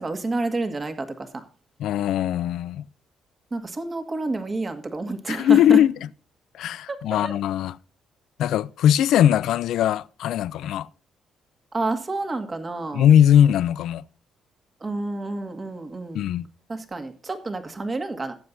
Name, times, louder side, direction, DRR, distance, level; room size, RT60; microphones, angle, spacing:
voice 1, 0.0-1.5 3.5-5.8 6.9-7.3 11.7-13.1 14.8-16.3 16.7-18.3, right 2 dB, 30° right, 1.9 m, -29 dB
voice 2, 1.8-2.8 5.3-5.9 6.6-7.7 8.4-10.9 12.9-14.0 16.1-16.5, left 10 dB, 80° left, 0.4 m, -20 dB
18.0 x 7.7 x 2.7 m
supercardioid pair, 70°, 0 cm